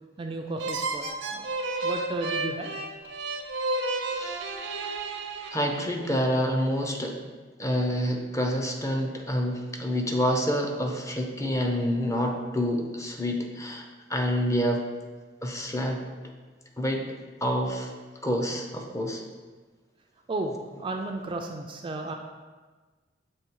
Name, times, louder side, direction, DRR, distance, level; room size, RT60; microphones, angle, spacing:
voice 1, 0.2-1.0 1.3-1.5 1.8-2.7 20.3-22.1, right 2 dB, 25° right, 3 dB, 0.4 m, -33 dB
sound 1, 0.6-6.1, right 2 dB, 75° right, 0.6 m, -32 dB
voice 2, 4.0-4.5 5.5-7.2 7.6-13.8 14.1-14.8 15.4-16.0 16.8-17.0 17.4-17.9 18.2-19.2, equal, 15° left, 2 dB, 0.6 m, -27 dB
7.2 x 3.1 x 4.6 m, 1.3 s
head